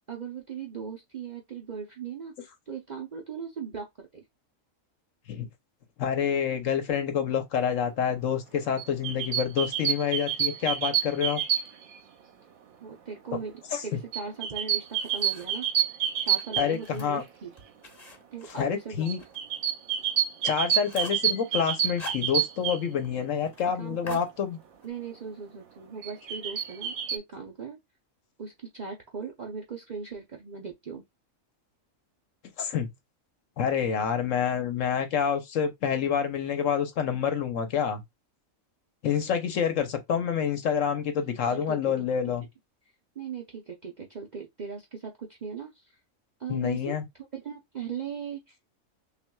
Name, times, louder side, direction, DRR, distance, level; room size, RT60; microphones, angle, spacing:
voice 1, 0.1-4.1 12.8-15.7 16.2-17.5 18.3-19.1 23.8-24.2 24.8-27.8 28.4-31.0 41.5-42.1 43.2-46.0 46.4-47.0 47.3-48.6, right 6 dB, 45° right, 0.6 m, -39 dB
voice 2, 6.0-11.4 13.7-13.8 16.6-17.2 18.5-19.2 20.4-24.6 32.6-32.9 33.6-38.0 39.0-42.4 46.5-47.0, left 7 dB, 70° left, 1.1 m, -27 dB
sound 1, 8.8-12.0 14.1-17.2 19.1-22.8 26.0-27.2, right 9 dB, 80° right, 1.2 m, -28 dB
sound 2, 14.5-15.7 16.2-19.4 19.7-19.8 20.2-20.3 20.6-21.3 21.7-22.8 23.0-23.1 23.4-23.7 24.1-24.9, left 3 dB, 30° left, 1.0 m, -46 dB
5.7 x 2.5 x 2.3 m
omnidirectional pair, 1.4 m